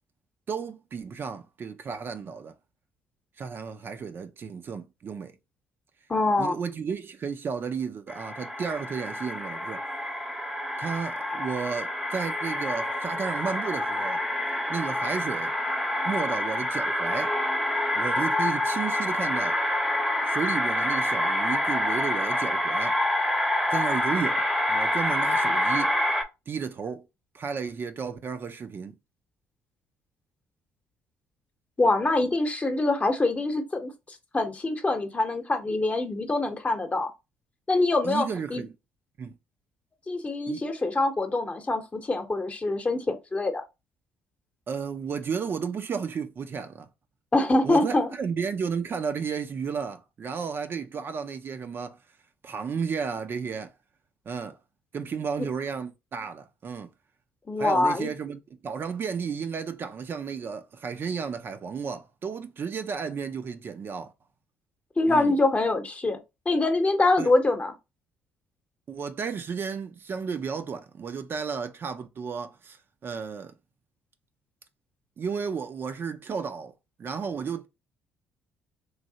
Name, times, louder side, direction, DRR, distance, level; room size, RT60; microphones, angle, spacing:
voice 1, 0.5-2.5 3.4-5.3 6.4-9.8 10.8-14.2 14.7-15.5 16.1-17.3 17.9-19.6 20.3-23.0 23.7-24.4 24.7-26.0 26.5-27.0 27.3-29.0 38.0-38.7 39.2-39.3 40.5-40.6 44.7-46.9 47.6-52.0 52.4-53.7 54.3-54.6 54.9-56.9 57.6-64.1 65.1-65.3 67.2-67.3 68.9-73.5 75.2-76.7 77.0-77.7, right 6 dB, 45° right, 0.5 m, -33 dB
voice 2, 6.1-6.6 31.8-33.9 34.3-37.1 37.7-38.6 40.1-43.6 47.3-48.1 57.5-58.1 65.0-66.2 66.5-67.7, left 2 dB, 25° left, 0.8 m, -24 dB
sound 1, 8.1-26.2, left 1 dB, 5° right, 0.8 m, -27 dB
3.1 x 2.6 x 2.7 m
hypercardioid pair, 55°, 5 cm